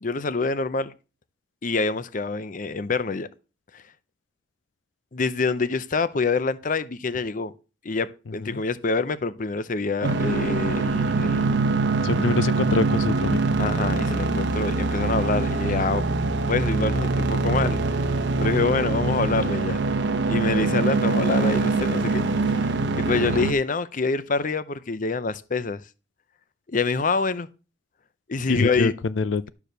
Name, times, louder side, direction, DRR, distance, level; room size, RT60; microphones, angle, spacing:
voice 1, 0.0-0.9 1.6-3.3 3.7-3.8 5.1-7.5 7.8-11.6 13.6-16.0 16.4-17.8 18.4-19.8 20.3-25.8 26.7-27.5 28.3-28.9, left 4 dB, 45° left, 0.7 m, -26 dB
sound 1, 10.0-23.5, right 3 dB, 70° right, 0.9 m, -23 dB
voice 2, 12.0-13.4 28.5-29.5, left 3 dB, 90° left, 0.5 m, -24 dB
11.5 x 4.8 x 6.7 m
head